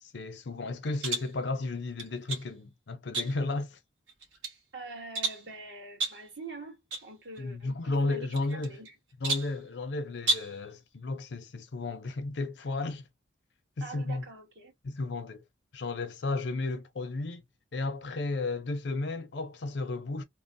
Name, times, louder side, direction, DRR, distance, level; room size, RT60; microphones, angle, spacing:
voice 1, 0.0-3.8 7.4-8.8 9.2-13.0 13.8-14.2 14.8-15.4 15.7-17.4 17.7-20.2, left 2 dB, 65° left, 0.6 m, -33 dB
sound 1, 1.0-1.4 2.0-2.5 3.1-3.6 4.1-4.6 5.1-5.5 6.0-6.3 6.9-7.1 7.4-7.5 8.3-8.9 9.2-9.6 10.2-10.6, right 2 dB, 85° right, 1.1 m, -32 dB
voice 2, 4.7-8.9 13.8-14.7, right 3 dB, 65° right, 1.4 m, -45 dB
3.0 x 2.0 x 2.6 m
head